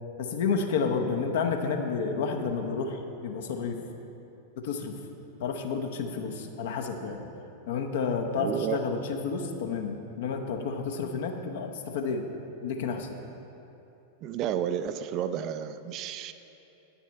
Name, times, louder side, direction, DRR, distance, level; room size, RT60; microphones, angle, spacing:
voice 1, 0.2-3.8 4.6-4.9 5.4-7.3 7.7-12.2 12.6-13.2, left 5 dB, 55° left, 4 dB, 0.8 m, -30 dB
voice 2, 8.4-8.8 14.2-16.3, right 9 dB, 40° right, 11 dB, 0.3 m, -31 dB
9.3 x 7.1 x 4.5 m, 2.9 s
figure-of-eight pair, 90°, 0 cm